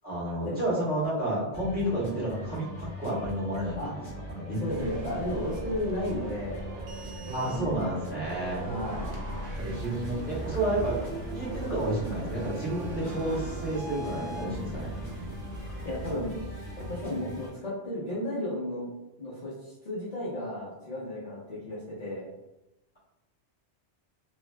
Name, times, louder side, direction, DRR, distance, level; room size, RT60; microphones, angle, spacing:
voice 1, 0.0-3.9 4.3-4.9 7.3-8.7 9.6-11.0 11.3-15.0, right 1 dB, 10° right, -9 dB, 1.1 m, -31 dB
sound 1, 1.5-17.5, equal, 15° left, 1.1 m, -41 dB
voice 2, 4.5-6.6 7.5-7.7 8.6-9.1 9.7-9.8 15.8-16.5 16.8-18.9 19.2-22.3, left 1 dB, 40° left, -9 dB, 0.7 m, -34 dB
sound 2, 4.7-16.1, right 3 dB, 85° right, 0.9 m, -40 dB
sound 3, 8.9-17.1, equal, 85° left, 1.0 m, -43 dB
3.0 x 2.6 x 2.2 m, 0.97 s
omnidirectional pair, 1.2 m